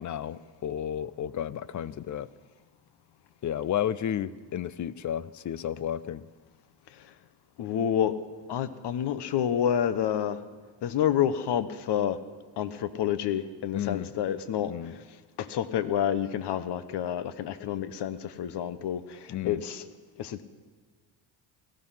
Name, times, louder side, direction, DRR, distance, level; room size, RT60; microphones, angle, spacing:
voice 1, 0.0-2.3 3.4-6.2 13.7-14.1 14.7-15.0 19.3-19.6, left 10 dB, 40° left, 18 dB, 0.6 m, -32 dB
voice 2, 7.6-8.2 8.5-10.4 10.8-12.2 12.6-14.7 15.4-19.9 20.2-20.4, left 9 dB, 55° left, 13 dB, 1.1 m, -28 dB
17.5 x 14.0 x 5.8 m, 1.4 s
supercardioid pair, 85°, 49 cm